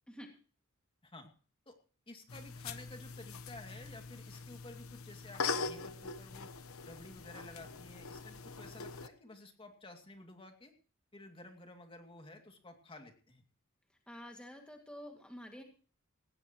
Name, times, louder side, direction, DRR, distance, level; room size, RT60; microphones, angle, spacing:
voice 1, 2.1-6.5 6.8-10.7 11.1-13.4, left 2 dB, 25° left, 4 dB, 2.4 m, -53 dB
sound 1, 2.3-9.1, left 4 dB, 75° left, 1.1 m, -42 dB
voice 2, 14.1-15.6, equal, 5° left, 2 dB, 2.1 m, -49 dB
18.0 x 17.0 x 3.0 m, 0.40 s
head